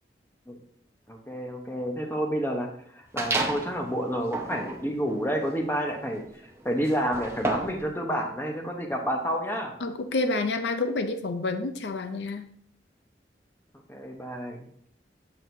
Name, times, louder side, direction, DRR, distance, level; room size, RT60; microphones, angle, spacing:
voice 1, 1.1-2.7 2.9-6.2 6.6-9.7 13.9-14.6, equal, 15° left, 2 dB, 0.9 m, -29 dB
sound 1, 3.2-3.8 4.2-7.9, right 2 dB, 15° right, 0.7 m, -32 dB
voice 2, 9.8-12.4, left 3 dB, 70° left, 8 dB, 0.5 m, -28 dB
7.7 x 6.3 x 2.7 m, 0.64 s
head